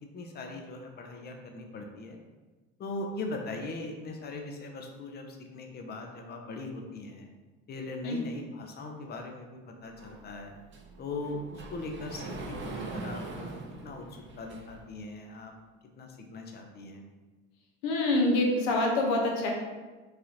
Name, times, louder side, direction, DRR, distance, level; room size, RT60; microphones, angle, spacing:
voice 1, 0.1-2.2 2.8-7.3 7.7-10.5 11.0-15.5 16.0-17.0, left 2 dB, 35° left, 3 dB, 0.6 m, -40 dB
Sliding door, 10.0-15.0, right 2 dB, 40° right, 0.6 m, -42 dB
voice 2, 17.8-19.5, left 2 dB, 75° left, 0 dB, 0.8 m, -26 dB
3.2 x 2.4 x 2.8 m, 1.3 s
supercardioid pair, 80°, 30 cm